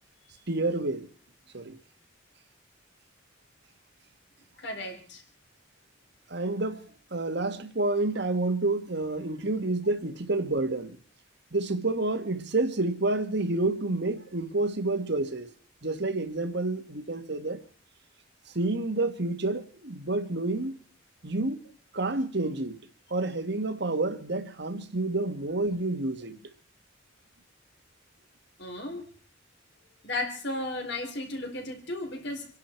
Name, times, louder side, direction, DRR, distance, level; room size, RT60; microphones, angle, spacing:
voice 1, 0.5-1.1 1.5-1.8 6.3-6.8 7.1-11.0 11.5-15.5 15.8-17.6 18.5-20.8 21.2-21.6 21.9-22.8 23.1-26.4, right 2 dB, 55° right, 1.6 m, -29 dB
voice 2, 4.6-5.2 28.6-29.1 30.0-32.5, left 2 dB, 60° left, 4.0 m, -34 dB
27.5 x 11.5 x 4.5 m
head